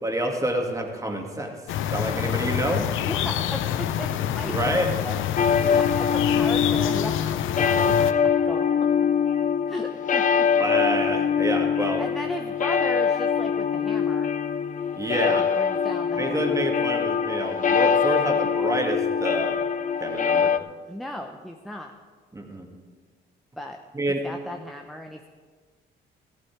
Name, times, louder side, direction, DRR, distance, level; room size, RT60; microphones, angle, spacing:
voice 1, 0.0-1.5 1.9-2.9 4.4-4.9 10.6-12.0 14.9-15.5 16.2-19.7 20.0-20.5 22.3-22.7 23.9-24.2, right 1 dB, 15° right, 2 dB, 2.1 m, -27 dB
sound 1, 1.7-8.1, left 10 dB, 85° left, 0.6 m, -27 dB
voice 2, 3.1-8.7 9.7-10.5 12.0-14.3 15.3-16.6 20.9-21.9 23.6-23.8 24.2-25.3, equal, ahead, 3 dB, 0.8 m, -36 dB
sound 2, 5.4-20.6, left 7 dB, 40° left, 0.5 m, -23 dB
14.0 x 11.5 x 4.6 m, 1.5 s
cardioid pair, 90°, 20 cm